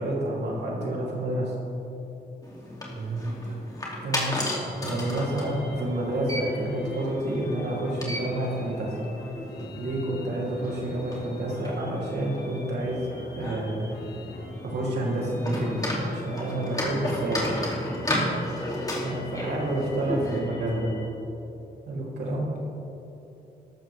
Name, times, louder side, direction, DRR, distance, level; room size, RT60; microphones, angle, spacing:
voice 1, 0.0-1.5 4.0-4.3 4.8-9.0 9.8-13.8 14.2-14.3 14.6-17.7 19.0-20.9 21.9-22.5, right 1 dB, 85° right, -4 dB, 3.1 m, -29 dB
sound 1, 2.4-20.4, left 1 dB, 20° left, 2.7 m, -34 dB
voice 2, 2.9-3.7 20.0-20.6, right 3 dB, 45° right, -1 dB, 1.4 m, -35 dB
sound 2, 4.4-21.1, left 2 dB, 70° left, 1.8 m, -43 dB
13.5 x 12.5 x 3.5 m, 3.0 s
cardioid pair, 105°, 17 cm